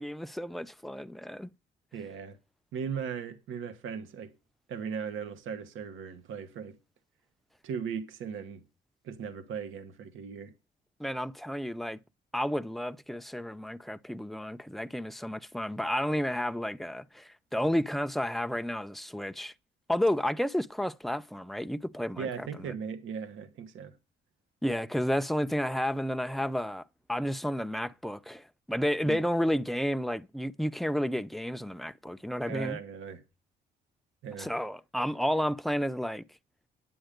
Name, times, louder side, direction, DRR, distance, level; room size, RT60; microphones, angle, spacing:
voice 1, 0.0-1.5 11.0-12.0 12.3-19.5 19.9-22.7 24.6-26.8 27.1-32.8 34.4-36.2, equal, ahead, 0.6 m, -31 dB
voice 2, 1.9-2.4 2.7-4.3 4.7-6.8 7.6-8.6 9.0-10.5 22.2-24.0 29.0-29.2 32.5-33.2 34.2-34.5, right 7 dB, 80° right, 1.3 m, -38 dB
9.2 x 8.8 x 5.2 m
cardioid pair, 90°, 20 cm